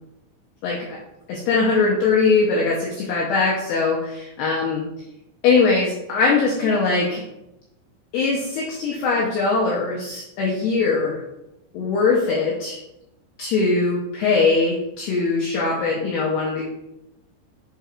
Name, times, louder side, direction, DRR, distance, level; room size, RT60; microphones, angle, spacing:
voice 1, 0.6-1.0 1.3-4.8 5.4-7.2 8.1-11.2 11.7-12.8 13.4-16.6, left 4 dB, 90° left, -3 dB, 2.3 m, -21 dB
7.3 x 5.5 x 2.4 m, 0.90 s
omnidirectional pair, 5.8 m